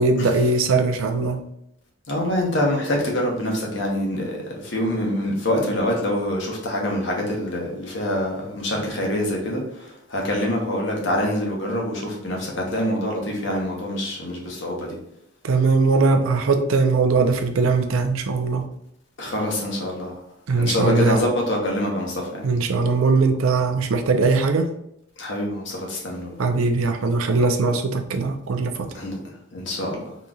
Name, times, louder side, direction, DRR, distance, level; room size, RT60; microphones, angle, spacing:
voice 1, 0.0-1.4 15.4-18.6 20.5-21.2 22.4-24.7 26.4-28.9, right 3 dB, 90° right, 6 dB, 0.5 m, -20 dB
voice 2, 2.1-4.4 4.6-15.0 19.2-20.2 20.6-22.4 25.2-26.5 28.9-29.2 29.5-30.1, left 1 dB, 60° left, -1 dB, 0.9 m, -25 dB
3.8 x 3.1 x 2.3 m, 0.78 s
head